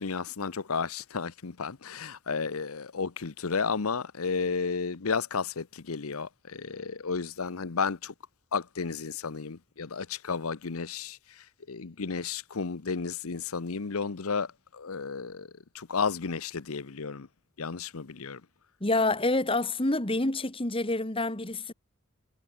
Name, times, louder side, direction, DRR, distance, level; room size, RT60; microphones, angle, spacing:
voice 1, 0.0-8.1 8.5-15.5 15.7-17.3 17.6-18.4, left 5 dB, 80° left, 0.9 m, -33 dB
voice 2, 18.8-21.7, left 2 dB, 25° left, 1.9 m, -27 dB
head